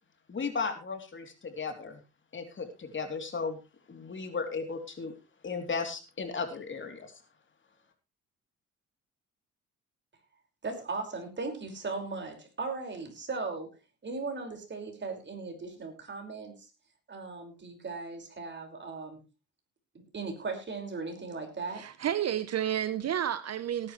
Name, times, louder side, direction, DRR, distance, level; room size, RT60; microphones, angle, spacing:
voice 1, 0.3-2.0 2.3-3.6 3.9-5.1 5.4-7.2, left 4 dB, 40° left, 5 dB, 3.3 m, -35 dB
voice 2, 10.6-13.7 14.0-16.7 17.1-19.2 19.9-21.8, right 4 dB, 35° right, 4 dB, 5.5 m, -37 dB
voice 3, 21.7-23.9, right 10 dB, 55° right, 13 dB, 1.0 m, -31 dB
18.5 x 11.0 x 3.2 m, 0.30 s
cardioid pair, 90°, 30 cm